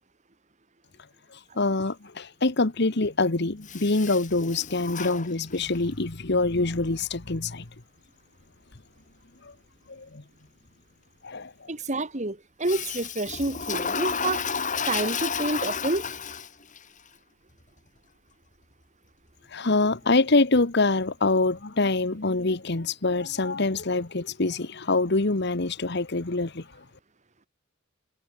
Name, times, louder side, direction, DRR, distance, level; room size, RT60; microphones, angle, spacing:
voice 1, 1.6-7.6 9.9-10.2 11.2-11.5 19.5-26.6, left 3 dB, 55° left, 1.3 m, -25 dB
Toilet flush, 3.6-5.9 12.6-16.8, left 6 dB, 40° left, 5.7 m, -32 dB
voice 2, 11.7-14.4 14.9-16.1, right 2 dB, 35° right, 2.0 m, -28 dB
head